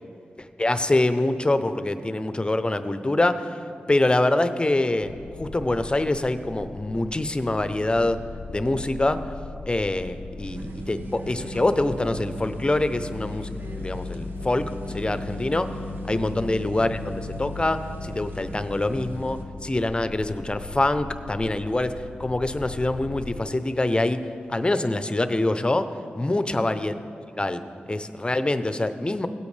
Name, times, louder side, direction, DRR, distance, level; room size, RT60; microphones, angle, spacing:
voice 1, 0.6-3.4 3.9-5.1 5.4-8.2 8.5-9.2 9.7-14.6 14.9-15.7 16.1-21.9 22.2-24.2 24.5-25.9 26.2-26.9 27.4-27.6 27.9-29.3, left 2 dB, 25° left, 10 dB, 0.6 m, -25 dB
sound 1, 5.0-23.4, left 5 dB, 75° left, 0.5 m, -39 dB
sound 2, 10.4-19.4, right 2 dB, 75° right, 0.8 m, -38 dB
16.0 x 8.5 x 3.3 m, 2.6 s
cardioid pair, 45°, 4 cm